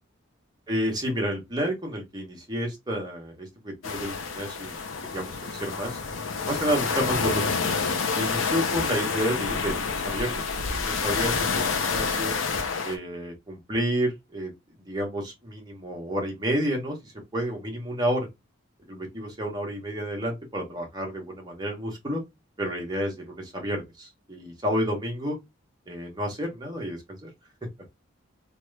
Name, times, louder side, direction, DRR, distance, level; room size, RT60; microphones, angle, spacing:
voice 1, 0.7-6.0 6.4-7.7 8.1-10.4 10.7-12.3 12.8-14.5 14.8-18.3 18.9-22.2 22.6-25.4 25.9-27.3, equal, 20° right, 1.1 m, -30 dB
sound 1, 3.8-13.0, left 5 dB, 85° left, 0.6 m, -28 dB
2.9 x 2.4 x 3.2 m
head